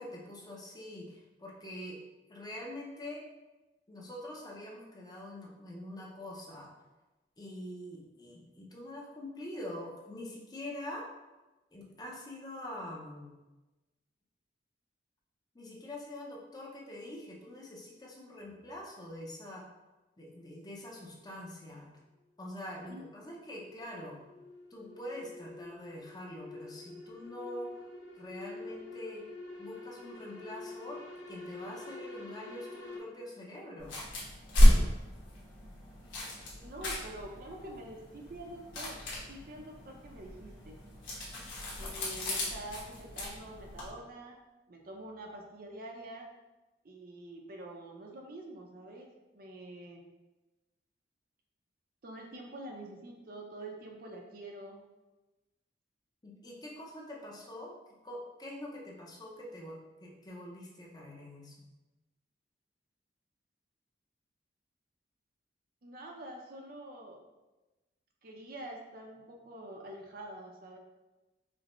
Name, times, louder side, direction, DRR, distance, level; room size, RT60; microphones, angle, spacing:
voice 1, 0.0-2.0 2.3-3.2 3.9-6.7 7.4-11.1 11.7-13.3 15.5-19.7 20.2-21.9 22.4-24.2 24.7-27.8 28.1-29.3 29.6-31.0 31.3-34.0 56.2-57.7 58.0-61.7, left 1 dB, 20° left, -2 dB, 0.5 m, -44 dB
sound 1, 22.6-33.0, left 2 dB, 65° left, 0.6 m, -47 dB
sound 2, 33.8-43.9, equal, 85° left, 1.2 m, -31 dB
voice 2, 36.5-39.0 39.3-40.8 41.8-44.4 44.7-46.3 46.8-49.1 49.3-50.0 52.0-54.8 65.8-67.2 68.2-70.8, right 1 dB, 50° right, 1 dB, 0.5 m, -46 dB
5.0 x 2.0 x 3.0 m, 1.1 s
head